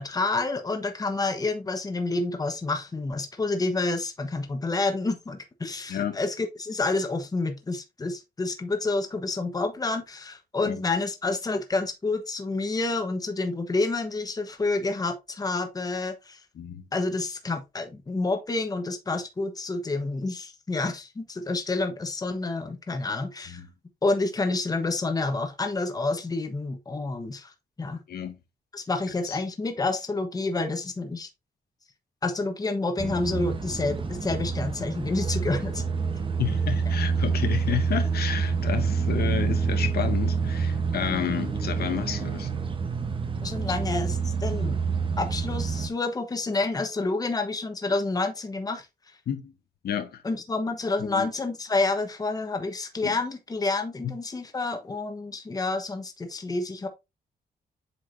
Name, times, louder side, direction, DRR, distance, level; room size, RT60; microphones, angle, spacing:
voice 1, 0.0-16.4 16.9-23.6 24.0-27.5 27.8-28.0 28.7-31.3 32.2-35.8 43.4-44.8 45.2-48.9 50.2-56.9, left 3 dB, 20° left, 1.0 m, -29 dB
sound 1, 33.0-45.9, right 5 dB, 30° right, 0.9 m, -27 dB
voice 2, 36.4-42.5 49.3-49.5 49.8-50.2 51.1-51.3 53.0-53.1, left 9 dB, 70° left, 0.9 m, -30 dB
7.8 x 4.7 x 2.6 m
wide cardioid pair, 145°, 17 cm